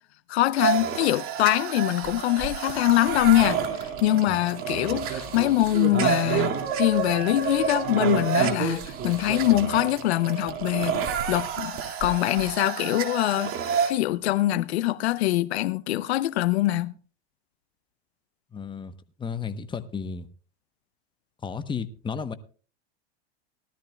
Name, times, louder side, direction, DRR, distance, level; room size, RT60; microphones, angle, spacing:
voice 1, 0.3-13.5 13.8-16.9, left 15 dB, 75° left, 0.6 m, -24 dB
sound 1, 0.6-13.9, right 7 dB, 40° right, 2.1 m, -29 dB
voice 2, 18.5-20.3 21.4-22.3, left 6 dB, 15° left, 0.9 m, -33 dB
18.5 x 13.0 x 2.2 m
hypercardioid pair, 105°, 32 cm